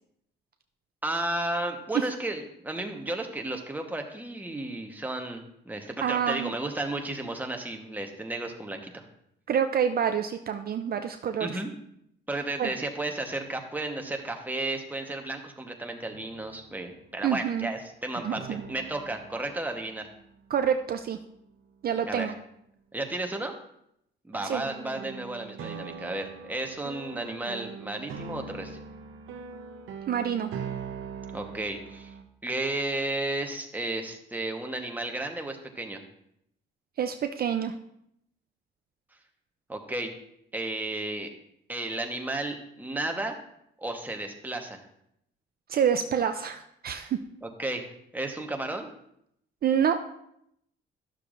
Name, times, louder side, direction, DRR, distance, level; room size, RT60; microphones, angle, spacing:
voice 1, 1.0-9.0 11.4-11.7 12.3-20.1 22.0-22.3 22.9-23.5 24.2-28.8 31.3-32.1 32.4-36.0 39.7-40.1 40.5-41.3 41.7-43.4 43.8-44.8 47.4-48.9, right 2 dB, 10° right, 3 dB, 1.1 m, -33 dB
voice 2, 6.0-6.5 9.5-11.6 12.6-12.7 17.2-17.7 18.2-18.6 20.5-21.2 21.8-22.3 24.4-24.6 30.1-30.5 37.0-37.7 45.7-47.2 49.6-50.0, right 8 dB, 50° right, 7 dB, 0.5 m, -27 dB
sound 1, 16.1-17.1 18.3-21.6 24.3-32.2, right 6 dB, 80° right, 0.8 m, -42 dB
11.5 x 6.7 x 2.5 m, 0.76 s
cardioid pair, 90°, 20 cm